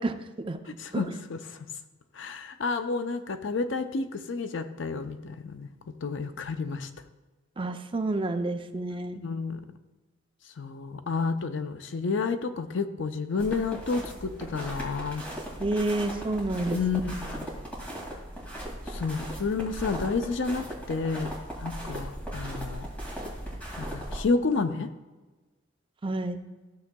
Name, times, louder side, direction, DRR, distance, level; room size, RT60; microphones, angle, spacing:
voice 1, 0.0-0.6 7.6-9.2 15.6-16.8 26.0-26.4, right 2 dB, 25° right, 7 dB, 0.5 m, -29 dB
voice 2, 0.8-1.7 2.1-5.7 6.0-6.9 9.2-9.6 10.6-15.2 16.7-17.5 18.9-21.3 21.6-22.9 23.8-24.9, left 4 dB, 65° left, 9 dB, 0.5 m, -30 dB
Steps on snow, 13.4-24.2, right 1 dB, 5° left, 2.2 m, -38 dB
13.5 x 6.8 x 2.2 m, 1.2 s
head